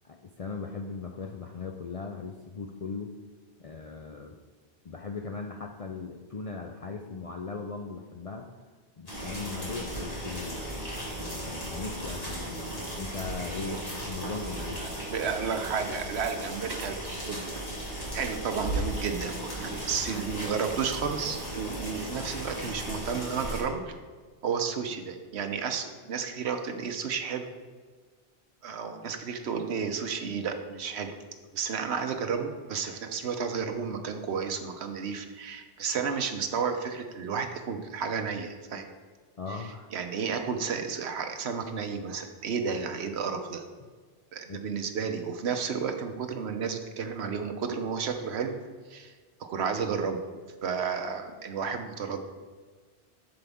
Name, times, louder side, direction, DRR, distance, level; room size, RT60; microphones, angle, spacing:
voice 1, 0.0-3.1 3.6-4.4 4.8-8.5 9.0-14.8 39.4-39.9 44.5-44.6, left 4 dB, 50° left, 4 dB, 0.4 m, -39 dB
sound 1, 9.1-23.6, right 1 dB, 35° left, 2.2 m, -36 dB
voice 2, 14.8-17.8 18.1-24.0 24.4-27.5 28.6-31.2 31.5-38.9 39.5-43.6 44.3-48.5 48.9-49.1 49.4-50.2 50.6-52.2, right 6 dB, 80° right, 6 dB, 1.0 m, -32 dB
7.9 x 7.0 x 3.5 m, 1.4 s
omnidirectional pair, 1.1 m